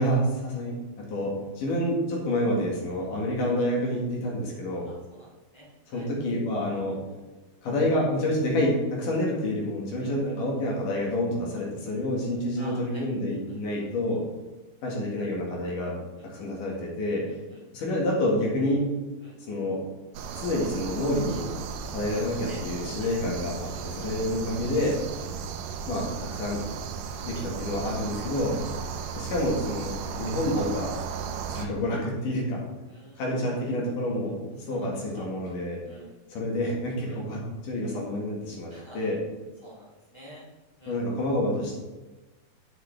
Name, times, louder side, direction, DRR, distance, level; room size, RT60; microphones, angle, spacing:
voice 1, 0.0-4.9 5.9-7.0 7.6-14.2 14.8-16.0 16.2-17.3 17.7-18.8 19.5-19.8 20.4-21.5 21.9-25.0 25.9-26.6 27.2-28.6 29.1-31.0 31.5-32.6 33.2-35.8 36.3-39.2 40.9-41.7, left 1 dB, 60° left, -3 dB, 3.2 m, -28 dB
voice 2, 4.9-6.1 10.0-10.4 12.6-13.1 13.5-13.6 16.2-16.3 17.3-17.6 19.2-19.4 21.8-22.6 22.9-23.1 23.7-24.1 25.2-25.3 28.6-28.7 32.9-33.4 34.7-35.3 35.8-36.2 37.0-37.2 38.7-39.1 39.6-40.4 40.8-41.0, equal, 20° left, -6 dB, 0.7 m, -49 dB
sound 1, 20.1-31.7, right 6 dB, 80° right, 2.0 m, -35 dB
8.3 x 8.1 x 3.4 m, 1.2 s
omnidirectional pair, 4.3 m